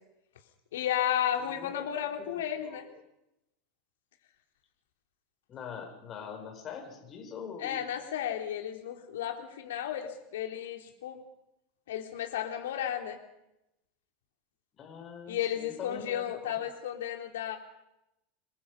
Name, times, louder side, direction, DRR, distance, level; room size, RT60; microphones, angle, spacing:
voice 1, 0.7-2.9 7.6-11.2 11.9-13.2 15.3-17.6, left 10 dB, 65° left, 4 dB, 3.6 m, -33 dB
voice 2, 1.4-1.7 2.2-2.8 5.5-7.8 14.7-16.6, left 6 dB, 35° left, 3 dB, 7.1 m, -43 dB
29.0 x 22.5 x 5.5 m, 0.86 s
figure-of-eight pair, 80°, 0 cm